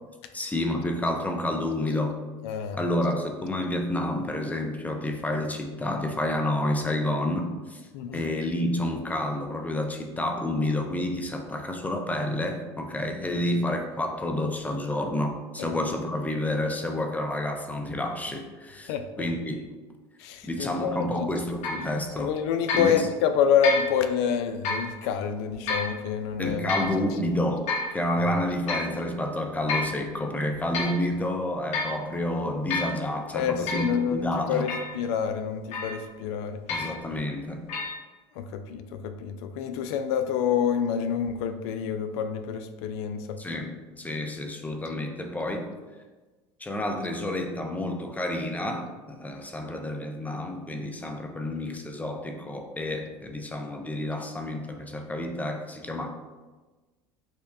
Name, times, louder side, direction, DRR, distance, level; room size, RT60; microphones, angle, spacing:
voice 1, 0.3-2.2 2.8-7.8 8.1-18.9 19.2-19.7 20.4-22.4 22.7-23.1 26.4-34.7 36.7-37.6 43.4-45.7 46.6-56.2, left 1 dB, 10° left, 3 dB, 0.5 m, -29 dB
voice 2, 2.4-2.8 7.9-8.2 13.3-13.5 15.6-15.7 18.9-19.3 20.2-21.3 22.2-26.7 33.3-36.9 38.4-43.4, left 7 dB, 75° left, 8 dB, 0.4 m, -27 dB
sound 1, 21.6-21.9 22.7-22.9 23.6-23.9 24.6-24.9 25.7-25.9 26.7-26.9 27.7-27.9 28.7-28.9 29.7-30.0 30.5-31.0 31.7-32.0 32.7-33.0 33.7-33.9 34.7-35.0 35.7-36.0 36.7-37.0 37.7-37.9, left 3 dB, 55° left, 1.0 m, -29 dB
5.5 x 2.3 x 2.2 m, 1.3 s
hypercardioid pair, 85°, 14 cm